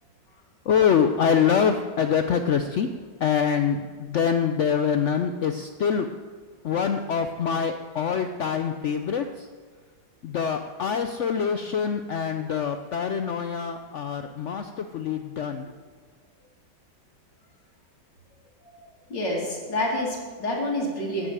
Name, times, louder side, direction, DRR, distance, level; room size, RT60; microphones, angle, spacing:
voice 1, 0.7-2.9 3.2-6.1 6.6-9.5 10.2-15.7, left 7 dB, 70° left, 7 dB, 0.7 m, -25 dB
voice 2, 18.6-21.3, left 1 dB, 90° left, -3 dB, 3.3 m, -28 dB
13.0 x 6.4 x 8.9 m, 1.5 s
omnidirectional pair, 1.9 m